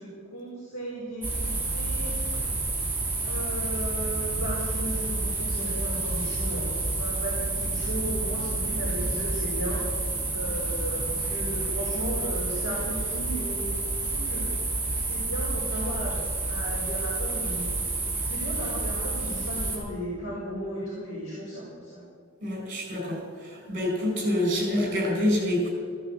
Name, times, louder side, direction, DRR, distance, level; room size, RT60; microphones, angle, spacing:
voice 1, 0.0-2.1 3.3-9.8 10.3-14.5 15.0-16.1 16.5-17.7 18.2-22.0, equal, 70° left, -7 dB, 4.1 m, -35 dB
sound 1, 1.2-19.8, right 2 dB, 10° right, 3.7 m, -29 dB
voice 2, 22.4-25.7, left 1 dB, 40° right, 0 dB, 4.2 m, -27 dB
14.5 x 9.3 x 7.4 m, 2.4 s
head